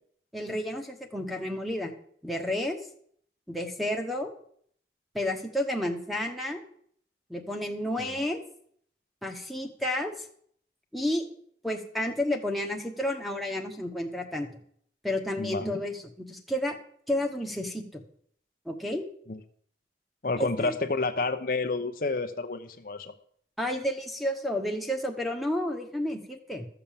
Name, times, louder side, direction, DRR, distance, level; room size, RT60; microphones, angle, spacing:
voice 1, 0.3-1.9 2.2-2.8 3.5-4.3 5.1-6.6 7.3-8.4 9.2-10.3 10.9-11.3 11.6-14.5 15.0-16.8 17.1-18.0 18.6-19.0 20.4-20.8 23.6-26.7, left 1 dB, ahead, 4 dB, 1.3 m, -31 dB
voice 2, 15.4-15.8 19.3-19.4 20.2-23.1, left 3 dB, 50° left, 7 dB, 0.8 m, -30 dB
13.5 x 6.9 x 7.4 m, 0.63 s
head